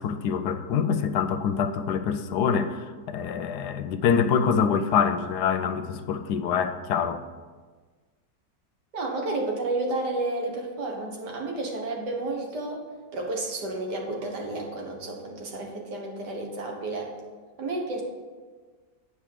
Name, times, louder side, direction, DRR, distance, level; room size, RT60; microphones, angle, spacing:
voice 1, 0.0-7.2, left 7 dB, 75° left, 10 dB, 1.1 m, -25 dB
voice 2, 8.9-12.8 13.1-17.1 17.6-18.0, right 2 dB, 75° right, 0 dB, 2.0 m, -31 dB
8.7 x 4.8 x 6.6 m, 1.4 s
omnidirectional pair, 1.8 m